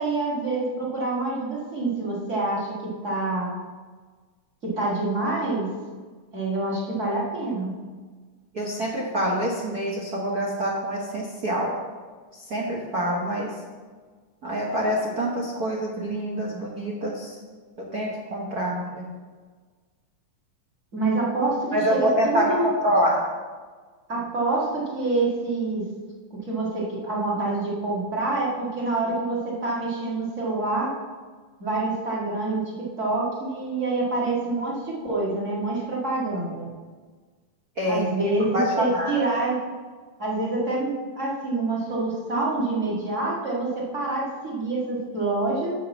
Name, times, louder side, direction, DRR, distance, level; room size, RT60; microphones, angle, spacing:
voice 1, 0.0-3.5 4.6-5.7 6.3-7.7 20.9-22.7 24.1-25.8 26.4-30.9 31.6-36.7 37.8-39.6 40.2-45.7, right 2 dB, 30° right, -4 dB, 1.8 m, -26 dB
voice 2, 8.5-11.7 12.3-13.5 14.4-17.4 17.9-19.1 21.7-23.2 37.8-38.1 38.5-39.1, equal, 75° right, -4 dB, 0.8 m, -26 dB
7.0 x 6.5 x 7.2 m, 1.4 s
omnidirectional pair, 3.7 m